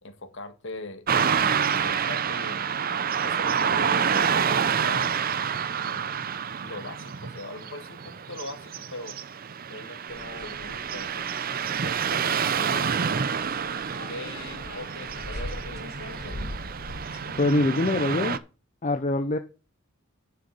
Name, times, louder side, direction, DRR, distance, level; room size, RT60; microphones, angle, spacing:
voice 1, 0.0-2.7 3.2-5.2 5.8-6.2 6.6-9.2 9.7-11.3 11.7-13.0 14.1-16.4, left 2 dB, 60° left, 8 dB, 1.8 m, -41 dB
Car passing by / Traffic noise roadway noise, 1.1-18.4, right 7 dB, 45° right, 0.6 m, -28 dB
sound 1, 10.1-17.8, left 1 dB, 80° left, 3.4 m, -41 dB
voice 2, 17.4-18.4 18.8-19.4, left 2 dB, 35° left, 7 dB, 0.7 m, -24 dB
9.4 x 6.8 x 5.4 m, 0.33 s
head